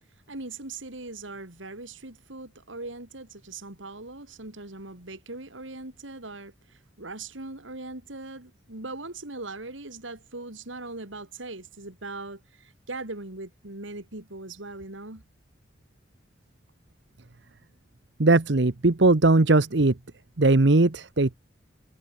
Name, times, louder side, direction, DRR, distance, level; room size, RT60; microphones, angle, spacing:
voice 1, 0.3-15.2, right 2 dB, 80° right, 3.7 m, -40 dB
voice 2, 18.2-19.9 20.4-21.4, right 2 dB, 65° right, 1.0 m, -19 dB
head